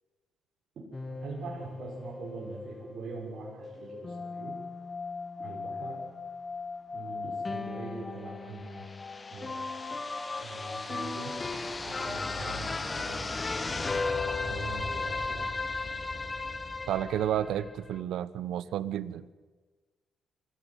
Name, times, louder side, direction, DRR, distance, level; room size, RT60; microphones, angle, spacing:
sound 1, 0.9-18.0, left 3 dB, 25° left, 1.6 m, -36 dB
voice 1, 1.2-4.5 5.4-6.0 6.9-9.0 9.3-10.0 10.4-13.3 14.4-15.6, right 3 dB, 60° right, -5 dB, 6.8 m, -43 dB
voice 2, 16.9-19.3, right 11 dB, 80° right, 16 dB, 1.0 m, -31 dB
24.5 x 17.5 x 9.3 m, 1.4 s
cardioid pair, 90°, 0 cm